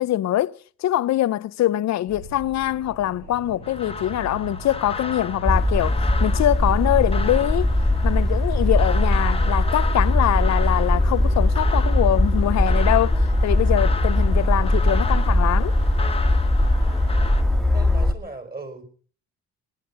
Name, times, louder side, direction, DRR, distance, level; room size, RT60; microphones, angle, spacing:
voice 1, 0.0-7.7 8.0-15.7, left 13 dB, 65° left, 0.6 m, -23 dB
sound 1, 2.1-10.0, right 3 dB, 70° right, 4.8 m, -39 dB
sound 2, 3.6-17.4, left 4 dB, 20° left, 1.3 m, -35 dB
sound 3, 5.4-18.1, left 1 dB, ahead, 1.7 m, -20 dB
voice 2, 16.8-17.4 17.7-18.8, right 3 dB, 30° right, 4.8 m, -39 dB
19.0 x 11.5 x 5.4 m
cardioid pair, 90°, 30 cm